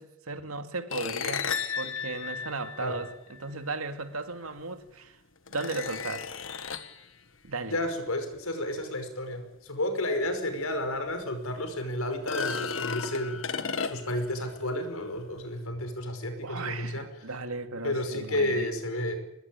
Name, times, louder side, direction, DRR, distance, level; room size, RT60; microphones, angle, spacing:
voice 1, 0.0-1.5 1.8-5.2 5.5-6.3 7.4-7.8 16.4-18.7, right 3 dB, 90° right, 8 dB, 2.5 m, -36 dB
sound 1, 0.9-3.4 4.6-4.7 5.5-7.0 10.3-10.4 10.8-10.9 12.1-14.3, left 6 dB, 65° left, 1.7 m, -34 dB
voice 2, 7.7-17.1 17.8-19.2, left 1 dB, 85° left, 7 dB, 5.5 m, -31 dB
24.0 x 20.5 x 9.0 m, 0.85 s
head